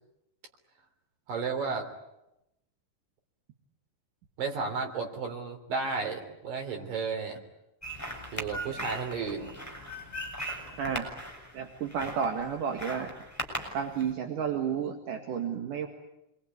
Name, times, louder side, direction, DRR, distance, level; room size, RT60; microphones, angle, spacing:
voice 1, 1.3-1.9 4.4-7.4 8.3-9.5 12.0-12.1, right 4 dB, 90° right, 4 dB, 5.4 m, -33 dB
sound 1, 7.8-14.1, equal, 5° left, 6.2 m, -39 dB
voice 2, 10.8-11.1 11.5-13.1 13.7-15.9, right 7 dB, 70° right, 4 dB, 3.5 m, -31 dB
28.0 x 22.0 x 9.6 m, 0.87 s
omnidirectional pair, 3.8 m